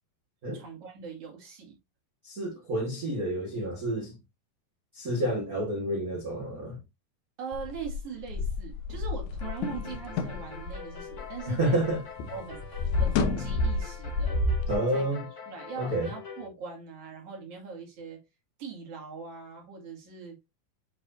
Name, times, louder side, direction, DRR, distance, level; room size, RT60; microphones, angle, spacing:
voice 1, 0.5-1.8 7.4-11.8 12.3-14.4 14.9-15.1 15.5-18.2 18.6-20.4, right 5 dB, 45° right, 2.9 m, -41 dB
voice 2, 2.2-4.2 4.9-6.8 11.5-12.0 14.7-15.2 15.8-16.1, right 1 dB, 75° right, 0.8 m, -29 dB
sound 1, 7.5-11.9 12.2-14.7, left 3 dB, 70° left, 1.9 m, -30 dB
sound 2, 9.4-16.5, left 5 dB, 30° left, 1.6 m, -45 dB
9.3 x 4.0 x 2.6 m
omnidirectional pair, 4.2 m